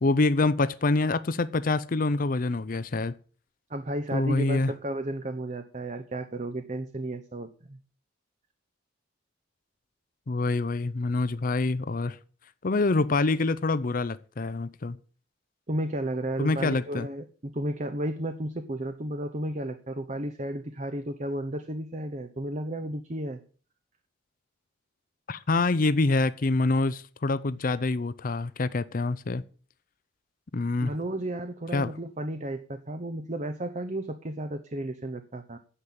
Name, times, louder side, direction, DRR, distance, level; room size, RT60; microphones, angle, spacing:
voice 1, 0.0-3.1 4.1-4.7 10.3-12.2 12.6-15.0 16.4-17.1 25.3-29.4 30.5-30.9 31.7-31.9, left 3 dB, 45° left, 0.6 m, -26 dB
voice 2, 3.7-7.8 15.7-23.4 30.8-35.6, right 1 dB, 40° right, 0.9 m, -33 dB
9.8 x 7.5 x 8.6 m
head